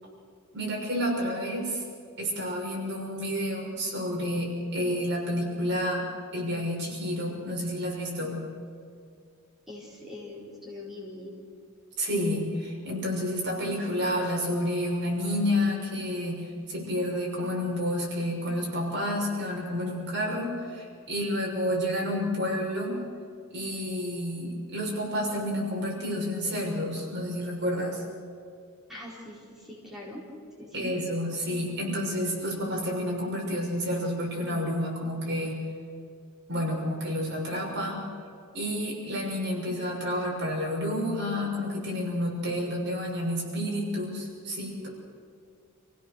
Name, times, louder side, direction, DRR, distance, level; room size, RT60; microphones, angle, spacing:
voice 1, 0.5-1.8 2.2-6.0 6.3-8.4 12.0-23.0 23.5-28.0 30.7-35.5 36.5-38.0 38.5-44.9, equal, 55° right, -2 dB, 6.4 m, -30 dB
voice 2, 9.7-11.3 28.9-30.2 30.6-30.9, left 1 dB, ahead, -6 dB, 4.7 m, -42 dB
28.0 x 16.5 x 6.7 m, 2.3 s
head